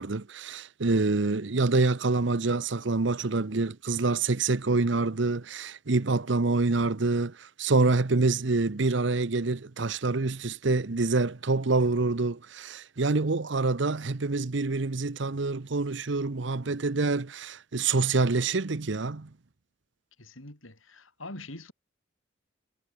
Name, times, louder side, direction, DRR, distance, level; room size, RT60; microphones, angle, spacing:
voice 1, 0.0-19.3, right 3 dB, 65° right, 0.8 m, -26 dB
voice 2, 20.2-21.7, left 2 dB, 90° left, 6.6 m, -44 dB
head